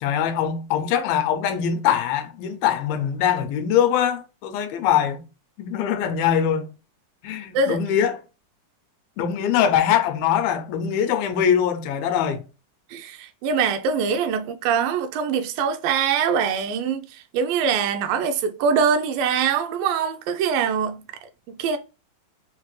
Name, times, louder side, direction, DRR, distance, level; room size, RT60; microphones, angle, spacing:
voice 1, 0.0-5.2 5.6-6.7 7.2-8.2 9.2-12.4, left 9 dB, 85° left, 2.4 m, -22 dB
voice 2, 12.9-21.8, right 6 dB, 80° right, 2.2 m, -23 dB
6.4 x 2.2 x 3.0 m
omnidirectional pair, 4.1 m